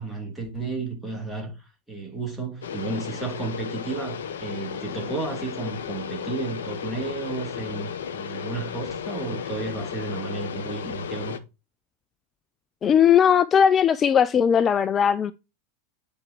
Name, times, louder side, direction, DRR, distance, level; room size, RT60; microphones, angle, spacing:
voice 1, 0.0-1.5 1.9-11.4, right 3 dB, 5° right, 3.1 m, -32 dB
sound 1, 2.6-11.4, left 8 dB, 70° left, 0.6 m, -34 dB
voice 2, 12.8-15.3, left 8 dB, 30° left, 0.3 m, -18 dB
9.4 x 5.1 x 2.9 m
figure-of-eight pair, 85°, 0 cm